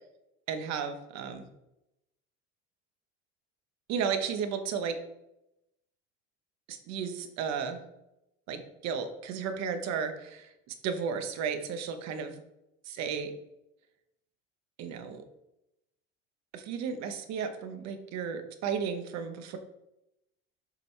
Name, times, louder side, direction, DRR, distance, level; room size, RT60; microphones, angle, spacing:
voice 1, 0.5-1.4 3.9-5.0 6.7-7.8 8.5-12.3 12.9-13.3 14.8-15.2 16.5-19.6, right 6 dB, 60° right, 8 dB, 1.1 m, -34 dB
7.1 x 5.1 x 3.3 m, 0.89 s
supercardioid pair, 95°, 30 cm